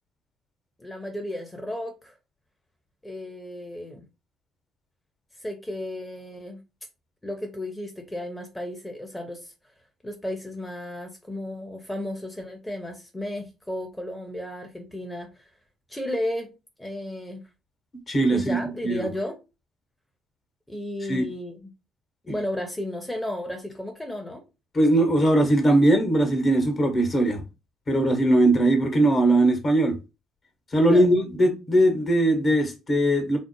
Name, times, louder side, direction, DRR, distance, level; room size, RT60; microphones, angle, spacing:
voice 1, 0.8-2.1 3.0-4.0 5.4-6.6 7.2-9.5 10.0-15.5 15.9-16.5 16.8-17.4 18.3-19.4 20.7-21.6 22.2-24.4 30.9-31.1, left 1 dB, 10° left, 0.9 m, -33 dB
voice 2, 18.1-18.6 18.8-19.1 21.1-21.3 22.3-22.4 24.7-27.4 27.9-30.0 30.7-33.4, right 1 dB, 35° left, 1.2 m, -20 dB
4.1 x 2.1 x 3.1 m
figure-of-eight pair, 50°, 0 cm